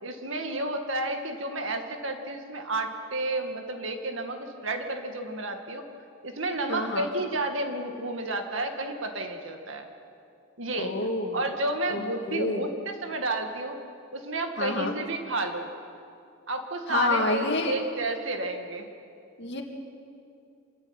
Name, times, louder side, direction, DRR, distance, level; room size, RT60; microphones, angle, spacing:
voice 1, 0.0-5.8 6.2-9.9 10.6-10.9 11.3-13.8 14.1-15.7 16.5-18.9, right 2 dB, 65° right, 4 dB, 2.1 m, -31 dB
voice 2, 6.7-7.1 10.8-11.4 11.9-12.7 14.6-15.0 16.9-17.8 19.4-19.6, left 2 dB, 55° left, 2 dB, 2.3 m, -28 dB
26.5 x 13.0 x 9.0 m, 2.5 s
head